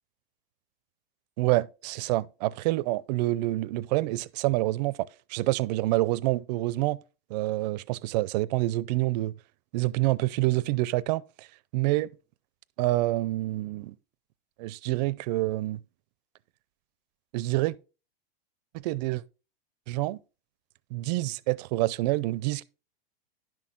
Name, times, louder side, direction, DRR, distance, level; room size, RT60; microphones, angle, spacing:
voice 1, 1.4-7.0 7.3-9.3 9.7-11.5 11.7-12.1 12.8-13.9 14.6-15.8 17.3-17.8 18.7-19.2 19.9-20.2 20.9-22.6, right 18 dB, 45° right, 0.5 m, -27 dB
10.5 x 6.1 x 3.7 m
hypercardioid pair, 130°, 30 cm